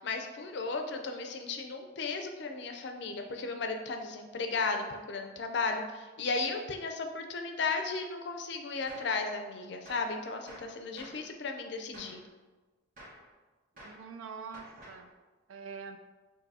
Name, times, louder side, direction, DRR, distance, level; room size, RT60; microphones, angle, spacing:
voice 1, 0.0-12.2, left 4 dB, 55° left, 5 dB, 0.4 m, -35 dB
Gunshot gunfire, 8.9-9.2 9.9-10.2 10.5-11.3 11.9-12.2 13.0-13.3 13.8-14.1 14.5-15.1, right 1 dB, 40° right, 1.1 m, -51 dB
voice 2, 13.8-15.1 15.5-16.0, right 5 dB, 85° right, 7 dB, 0.4 m, -44 dB
6.5 x 2.6 x 2.7 m, 1.3 s
head